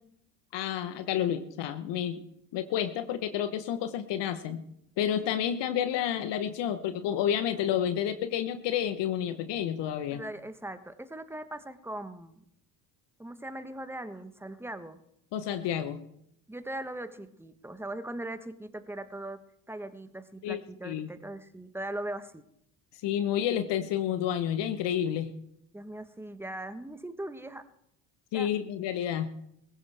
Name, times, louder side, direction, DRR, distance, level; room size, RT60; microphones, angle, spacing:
voice 1, 0.5-2.2 2.5-4.6 5.0-10.2 15.3-16.0 20.4-21.1 23.0-25.3 28.3-29.3, left 10 dB, 55° left, 10 dB, 1.2 m, -30 dB
voice 2, 10.1-12.4 13.2-15.0 16.5-19.4 19.7-22.4 25.7-27.6 28.3-28.5, right 1 dB, 5° right, 11 dB, 1.2 m, -40 dB
20.0 x 16.0 x 3.5 m, 0.75 s
hypercardioid pair, 65°, 49 cm